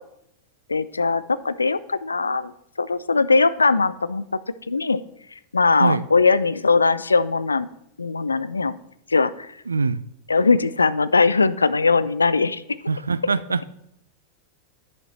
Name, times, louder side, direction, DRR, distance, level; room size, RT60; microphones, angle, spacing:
voice 1, 0.7-2.5 2.8-4.2 4.7-5.0 5.5-7.7 8.0-8.8 9.1-9.5 10.3-12.6, left 4 dB, 80° left, 16 dB, 0.3 m, -20 dB
voice 2, 9.7-10.0 12.9-13.7, right 4 dB, 75° right, 17 dB, 0.3 m, -23 dB
10.5 x 5.3 x 4.1 m, 0.77 s
figure-of-eight pair, 90°, 0 cm